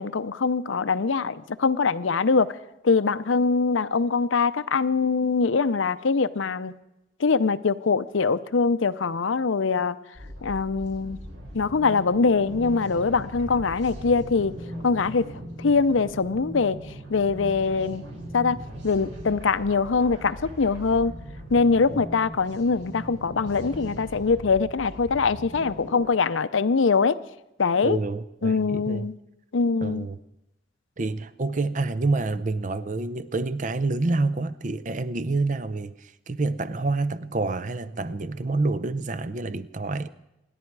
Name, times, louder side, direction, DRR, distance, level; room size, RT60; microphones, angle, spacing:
voice 1, 0.0-2.6 2.8-6.7 7.2-10.0 10.4-11.2 11.5-14.6 14.8-16.8 17.1-18.0 18.3-18.6 18.8-21.1 21.5-27.2 27.6-28.0 28.4-29.1 29.5-30.1, left 4 dB, 85° left, 0.6 m, -23 dB
sound 1, 10.1-26.1, equal, 75° right, 5.6 m, -40 dB
voice 2, 27.8-29.1 29.8-30.2 31.0-40.1, right 3 dB, 40° right, 0.6 m, -28 dB
27.0 x 11.0 x 4.7 m
head